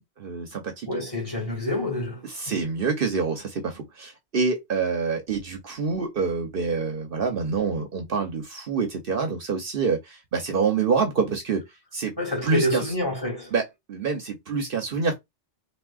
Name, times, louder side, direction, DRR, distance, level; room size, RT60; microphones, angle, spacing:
voice 1, 0.2-0.9 2.3-11.6 11.9-12.1 12.4-12.9 13.5-15.2, right 5 dB, 60° right, 0.9 m, -26 dB
voice 2, 0.9-2.5 12.2-13.5, left 1 dB, 20° left, 2.1 m, -28 dB
3.5 x 2.5 x 2.3 m
omnidirectional pair, 1.1 m